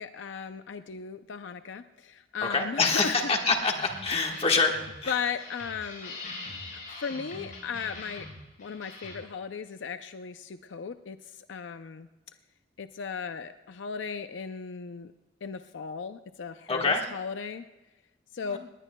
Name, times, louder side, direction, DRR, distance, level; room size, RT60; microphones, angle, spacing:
voice 1, 0.0-3.3 5.1-6.1 7.0-8.3 8.6-12.1 12.8-15.1 15.4-17.6 18.3-18.6, left 6 dB, 75° left, 9 dB, 0.5 m, -36 dB
voice 2, 2.5-4.7 5.0-5.1 16.7-17.0 18.4-18.6, left 4 dB, 35° left, 2 dB, 1.4 m, -25 dB
sound 1, 3.7-9.2, left 2 dB, 50° left, 6.0 m, -43 dB
20.0 x 19.0 x 2.2 m, 1.1 s
head